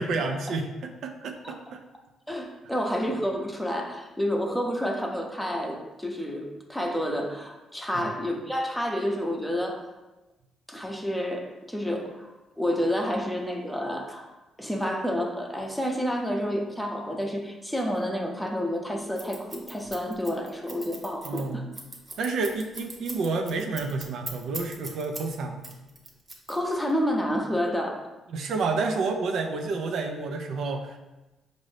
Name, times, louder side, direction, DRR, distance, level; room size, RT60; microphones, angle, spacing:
voice 1, 0.0-1.8 7.9-8.2 21.2-21.7 22.2-25.7 28.3-31.0, right 3 dB, 70° right, 4 dB, 0.5 m, -30 dB
voice 2, 2.3-9.8 10.7-14.3 14.6-21.6 26.5-28.1, equal, 5° left, 2 dB, 0.7 m, -29 dB
Scissors, 19.2-25.3 25.6-26.9, right 2 dB, 30° right, 0.9 m, -39 dB
5.2 x 2.6 x 3.2 m, 1.1 s
cardioid pair, 90°, 0 cm